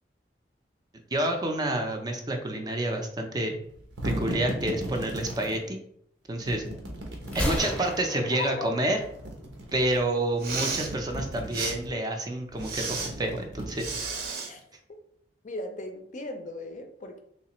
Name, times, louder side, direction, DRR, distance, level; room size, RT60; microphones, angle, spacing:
voice 1, 1.1-3.6 4.0-5.8 6.3-6.6 7.3-9.0 9.7-13.9, right 1 dB, 25° right, 3 dB, 0.4 m, -28 dB
sound 1, 3.6-5.6 6.4-8.0 8.9-10.0 10.4-11.9 12.5-14.3, equal, 90° right, 0.8 m, -37 dB
Gunshot gunfire, 7.3-9.2, equal, 5° left, 0.7 m, -33 dB
voice 2, 8.3-8.7 14.5-14.6 15.4-17.2, left 2 dB, 45° left, 5 dB, 0.5 m, -37 dB
Respiratory sounds, 10.3-10.9 11.5-11.7 12.6-13.1 13.8-14.5, right 4 dB, 60° right, 0.7 m, -32 dB
3.2 x 3.1 x 2.9 m, 0.69 s
head